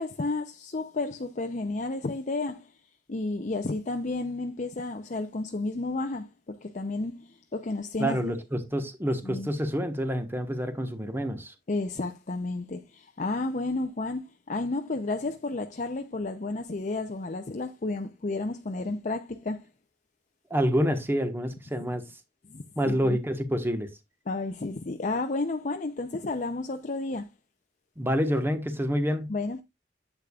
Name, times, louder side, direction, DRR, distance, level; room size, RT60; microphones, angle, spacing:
voice 1, 0.0-2.7 3.1-8.4 9.2-9.5 11.7-19.6 22.5-23.2 24.3-27.3 29.3-29.6, left 2 dB, 45° left, 0.7 m, -32 dB
voice 2, 8.0-11.5 20.5-22.1 22.8-23.9 28.0-29.3, equal, 15° right, 1.3 m, -27 dB
10.0 x 8.3 x 2.4 m
head